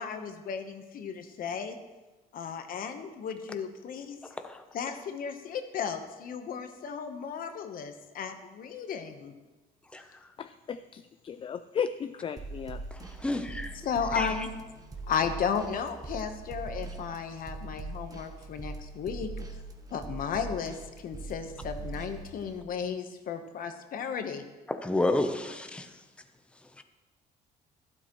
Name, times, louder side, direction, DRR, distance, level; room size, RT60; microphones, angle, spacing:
voice 1, 0.0-1.8 2.3-4.2 4.7-9.3 13.8-14.5 15.1-19.3 19.9-24.4, left 6 dB, 55° left, 7 dB, 1.1 m, -34 dB
voice 2, 10.4-12.8, left 7 dB, 30° left, 10 dB, 0.3 m, -35 dB
sound 1, 12.4-22.6, right 3 dB, 20° right, 1.1 m, -42 dB
voice 3, 12.9-13.8 14.1-14.3 24.7-25.9 26.8-26.9, left 2 dB, 5° left, 7 dB, 0.7 m, -30 dB
12.0 x 12.0 x 3.1 m, 1.2 s
cardioid pair, 110°, 17 cm